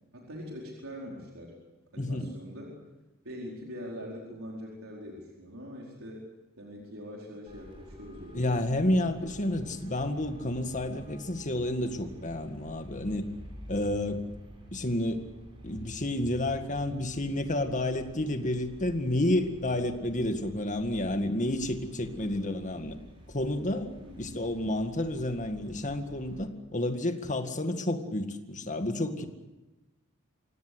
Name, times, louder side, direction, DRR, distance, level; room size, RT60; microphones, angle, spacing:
voice 1, 0.1-1.6 1.9-2.7 3.2-6.2 6.6-8.8 22.2-22.5 24.0-24.4, equal, 75° right, -2 dB, 4.7 m, -43 dB
Traffic noise roadway noise, 7.5-26.4, equal, 25° right, 7.5 m, -49 dB
voice 2, 8.3-13.3 13.7-14.2 14.7-15.2 15.6-23.0 23.3-29.3, left 1 dB, 35° left, 7 dB, 1.9 m, -30 dB
25.5 x 17.5 x 8.1 m, 1.1 s
head